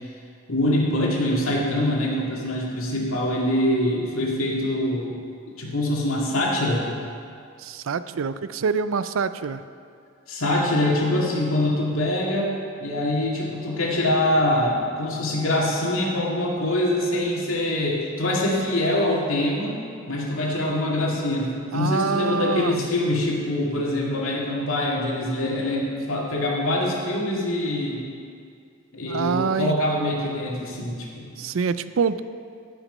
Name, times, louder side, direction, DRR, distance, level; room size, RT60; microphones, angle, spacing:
voice 1, 0.5-5.2 5.6-6.9 10.3-19.8 20.1-28.0 28.9-31.4, left 1 dB, 80° left, -3 dB, 2.2 m, -24 dB
voice 2, 7.6-9.6 21.7-22.9 29.1-29.8 31.4-32.2, right 5 dB, 70° right, 13 dB, 0.4 m, -25 dB
16.0 x 5.9 x 5.4 m, 2.3 s
head